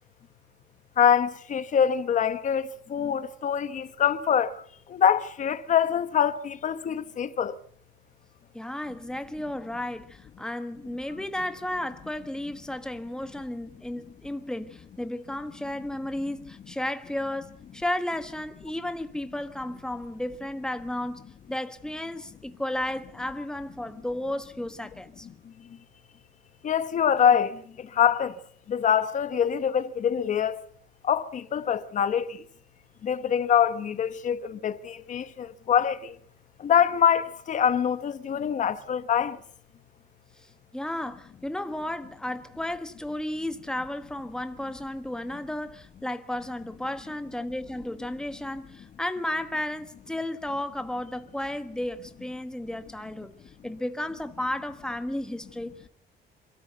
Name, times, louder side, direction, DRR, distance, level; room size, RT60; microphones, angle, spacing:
voice 1, 1.0-4.5 4.9-7.5 26.6-27.5 28.0-28.3 28.7-30.6 31.1-32.2 33.0-36.0 36.6-39.4, left 8 dB, 45° left, 1.1 m, -24 dB
voice 2, 8.5-25.3 40.4-53.3 53.6-55.9, left 1 dB, 5° left, 1.3 m, -33 dB
27.5 x 13.5 x 8.1 m
cardioid pair, 150°, 18 cm